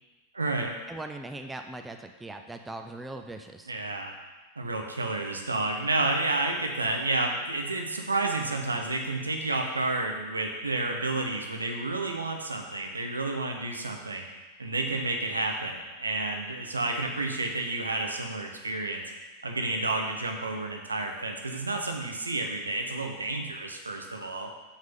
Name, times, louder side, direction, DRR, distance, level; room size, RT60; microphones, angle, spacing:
voice 1, 0.3-0.7 3.7-4.1 4.6-14.3 14.6-19.0 19.4-24.5, right 2 dB, 80° right, 3 dB, 1.0 m, -30 dB
voice 2, 0.9-3.7, right 2 dB, 10° right, 6 dB, 0.5 m, -40 dB
6.6 x 6.3 x 5.4 m, 1.3 s
figure-of-eight pair, 90°, 0 cm